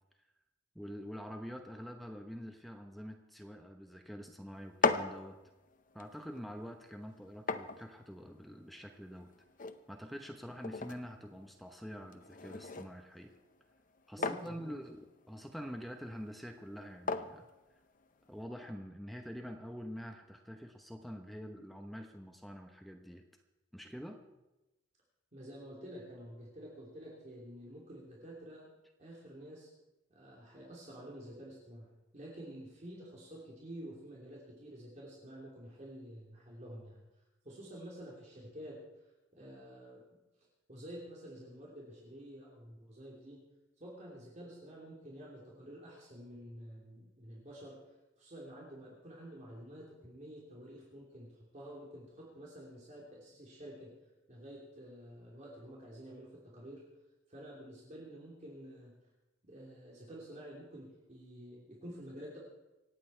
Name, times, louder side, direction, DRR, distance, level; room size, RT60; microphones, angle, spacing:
voice 1, 0.7-5.4 5.9-9.3 9.9-13.3 14.1-17.5 18.3-23.2 23.7-24.2, equal, ahead, 4 dB, 0.9 m, -46 dB
sound 1, 4.5-18.4, left 4 dB, 45° left, 0.7 m, -41 dB
voice 2, 14.2-14.7 25.3-28.7 29.0-29.7 30.1-31.9 32.1-37.0 37.4-38.8 39.3-40.0 40.7-43.4 43.8-47.8 48.2-53.9 54.3-56.8 57.3-58.9 59.4-62.4, equal, 40° right, -4 dB, 3.1 m, -49 dB
26.0 x 8.8 x 4.5 m, 1.0 s
head